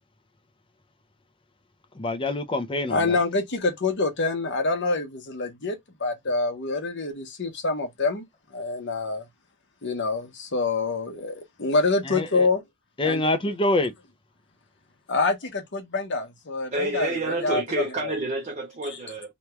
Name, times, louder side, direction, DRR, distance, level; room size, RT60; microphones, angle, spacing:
voice 1, 2.0-3.0 12.1-12.5 13.0-13.9, left 2 dB, 25° left, 0.5 m, -25 dB
voice 2, 2.9-8.2 8.5-9.3 9.8-12.6 13.0-13.5 15.1-18.1, left 3 dB, 55° left, 0.9 m, -26 dB
voice 3, 16.7-19.3, right 2 dB, 30° right, 0.5 m, -29 dB
3.0 x 2.3 x 3.0 m
head